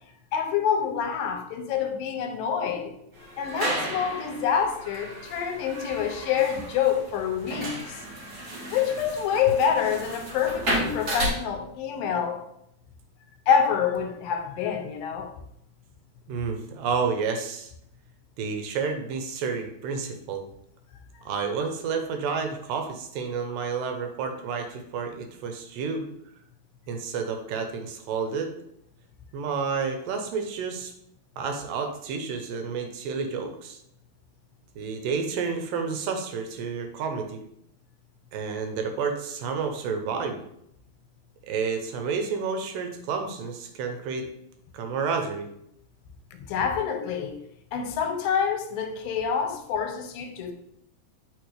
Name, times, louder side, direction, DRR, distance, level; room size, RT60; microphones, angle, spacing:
voice 1, 0.3-3.0 3.4-8.0 8.7-12.4 13.5-15.3 46.3-47.4 47.7-50.5, left 7 dB, 85° left, 2.5 m, -27 dB
sound 1, 3.1-11.3, right 1 dB, 55° right, 1.0 m, -33 dB
voice 2, 16.3-17.7 18.4-20.5 21.2-26.0 26.9-28.5 29.3-30.9 31.4-33.8 34.8-37.4 38.3-40.4 41.5-44.3 44.7-45.5, right 5 dB, 85° right, 2.4 m, -30 dB
7.9 x 4.4 x 3.3 m
omnidirectional pair, 4.0 m